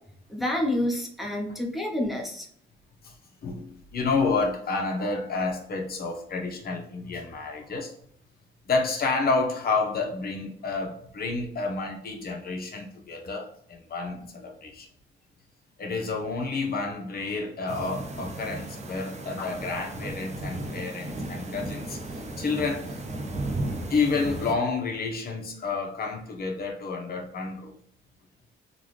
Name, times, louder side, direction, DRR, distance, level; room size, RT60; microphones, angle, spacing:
voice 1, 0.3-2.5, left 1 dB, ahead, -2 dB, 0.9 m, -28 dB
voice 2, 3.4-7.9 8.7-14.9 15.8-22.0 22.4-23.0 23.7-27.7, left 4 dB, 50° left, 2 dB, 0.8 m, -29 dB
sound 1, 17.7-24.5, right 2 dB, 35° right, 0.7 m, -35 dB
3.7 x 2.3 x 3.2 m, 0.68 s
cardioid pair, 90°, 20 cm